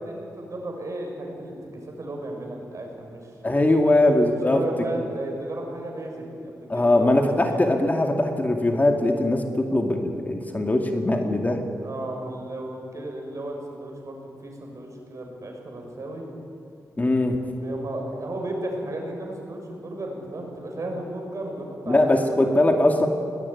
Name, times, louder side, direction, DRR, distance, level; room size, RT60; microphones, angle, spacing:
voice 1, 0.0-1.5 1.8-7.6 11.8-16.2 17.5-22.8, right 1 dB, 50° right, 1 dB, 6.6 m, -34 dB
voice 2, 3.4-4.6 6.7-11.6 17.0-17.4 21.9-23.1, left 1 dB, 25° left, 4 dB, 2.4 m, -21 dB
21.0 x 19.0 x 9.8 m, 2.6 s
cardioid pair, 70°, 6 cm